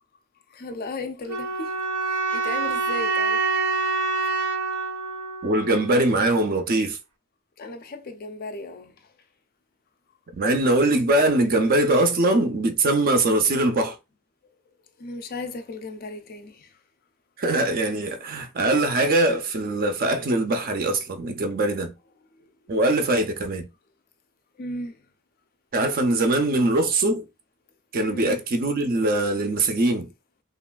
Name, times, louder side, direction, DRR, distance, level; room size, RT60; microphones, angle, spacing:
voice 1, 0.5-1.8 2.0-3.4 7.6-9.0 15.0-16.7 22.4-22.5 24.6-25.0 28.1-28.4, left 2 dB, 45° left, 0.4 m, -35 dB
sound 1, 1.3-6.3, right 4 dB, 90° right, 0.6 m, -26 dB
voice 2, 5.4-7.0 10.3-14.0 17.4-21.9 22.7-23.7 25.7-27.2 27.9-30.1, right 2 dB, 40° right, 0.4 m, -22 dB
3.1 x 2.4 x 2.2 m
head